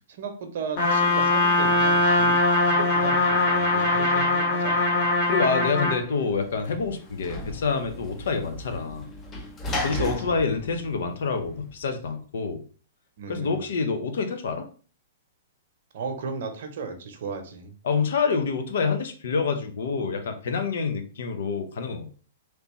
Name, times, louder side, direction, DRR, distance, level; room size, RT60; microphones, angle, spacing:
voice 1, 0.1-2.3 2.7-4.8 9.9-10.4 13.2-13.7 15.9-17.7, right 5 dB, 60° right, 5 dB, 0.8 m, -35 dB
Trumpet, 0.8-6.0, left 2 dB, 50° left, 1.5 m, -21 dB
voice 2, 5.3-9.1 9.8-12.6 13.3-14.6 17.8-22.1, left 5 dB, 70° left, 6 dB, 0.7 m, -27 dB
Sliding door / Slam, 6.0-11.8, left 1 dB, 25° left, 0.6 m, -36 dB
3.3 x 2.9 x 3.0 m, 0.40 s
hypercardioid pair, 120°, 0 cm